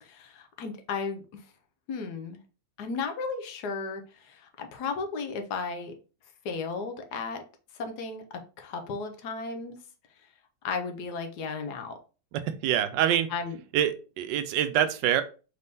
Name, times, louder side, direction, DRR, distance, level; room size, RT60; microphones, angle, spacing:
voice 1, 0.0-1.4 1.9-2.4 2.8-5.9 6.4-7.4 7.7-9.8 10.6-12.0 13.3-13.6, left 4 dB, 70° left, 5 dB, 1.2 m, -34 dB
voice 2, 12.3-13.3 13.7-15.2, right 10 dB, 90° right, 11 dB, 1.2 m, -25 dB
4.2 x 3.5 x 2.6 m, 0.35 s
omnidirectional pair, 1.9 m